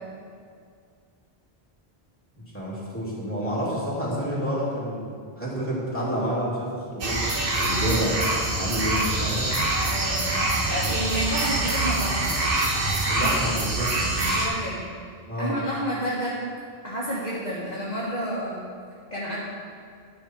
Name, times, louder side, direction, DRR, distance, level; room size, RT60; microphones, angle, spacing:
voice 1, 2.4-7.2 7.6-8.3 8.6-9.5 13.1-13.9 15.3-15.6, equal, 10° left, -7 dB, 2.6 m, -29 dB
sound 1, 7.0-14.5, right 2 dB, 65° right, 1.4 m, -25 dB
voice 2, 9.9-10.4 10.7-12.3 14.3-14.8 15.4-16.4 16.8-18.6 19.1-19.4, equal, 45° left, -8 dB, 1.5 m, -30 dB
10.5 x 6.7 x 4.4 m, 2.2 s
omnidirectional pair, 1.0 m